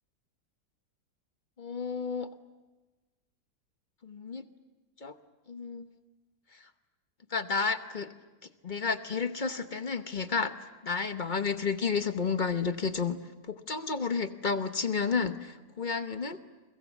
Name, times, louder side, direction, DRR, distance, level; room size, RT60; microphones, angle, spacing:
voice 1, 1.6-2.3 4.0-4.4 5.0-5.1 5.5-5.9 6.5-6.7 7.3-8.1 8.4-10.5 10.8-16.4, left 5 dB, 35° left, 9 dB, 0.9 m, -31 dB
29.5 x 24.0 x 7.3 m, 1.2 s
omnidirectional pair, 1.7 m